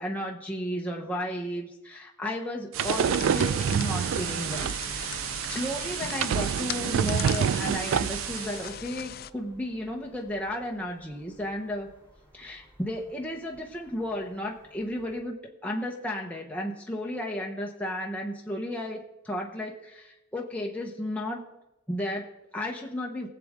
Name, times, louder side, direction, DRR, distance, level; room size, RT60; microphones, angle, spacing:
voice 1, 0.0-11.9 12.3-21.4 21.9-23.3, left 1 dB, 5° left, -1 dB, 1.0 m, -34 dB
sound 1, 2.7-8.6, right 8 dB, 80° right, 0.3 m, -28 dB
sound 2, 2.8-9.3, left 10 dB, 50° left, 0.4 m, -39 dB
sound 3, 4.7-15.2, right 1 dB, 15° right, 4.1 m, -56 dB
19.0 x 7.7 x 3.7 m, 0.93 s
head